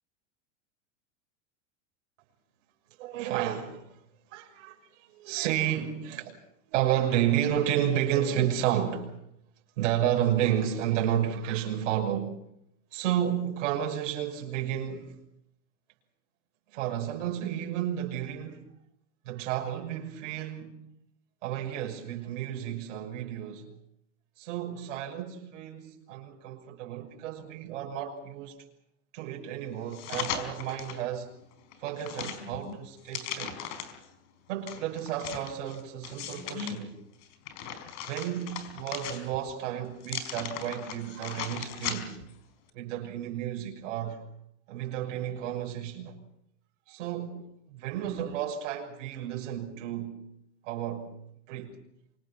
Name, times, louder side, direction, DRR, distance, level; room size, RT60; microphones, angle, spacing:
voice 1, 3.0-4.0 4.3-6.4 6.6-9.2 9.8-12.4 12.9-15.2 16.7-18.7 19.2-20.8 21.4-23.7 24.4-28.5 29.1-31.3 31.8-33.6 34.5-37.0 38.1-42.2 42.7-44.3 44.7-46.2 46.9-50.2 50.6-51.1 51.5-51.7, right 10 dB, 75° right, 6.4 m, -31 dB
sound 1, 29.9-31.0 31.5-34.1 34.7-36.8 37.2-39.5 40.0-42.3 42.7-42.8, left 9 dB, 45° left, 4.7 m, -38 dB
26.5 x 26.0 x 5.8 m
supercardioid pair, 160°, 37 cm